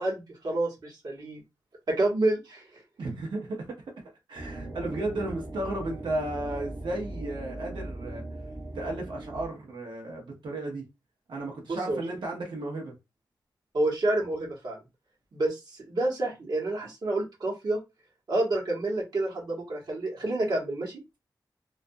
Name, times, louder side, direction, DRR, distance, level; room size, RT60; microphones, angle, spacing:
voice 1, 0.0-1.4 1.9-2.7 11.7-12.0 13.7-14.8 15.3-17.8 18.3-21.0, right 2 dB, 60° right, 1.1 m, -28 dB
voice 2, 3.0-3.8 4.3-8.2 8.7-10.8 11.3-12.9, right 2 dB, 85° right, 0.8 m, -34 dB
sound 1, 4.3-9.5, right 1 dB, 30° right, 0.7 m, -39 dB
2.5 x 2.2 x 2.6 m
wide cardioid pair, 85°, 8 cm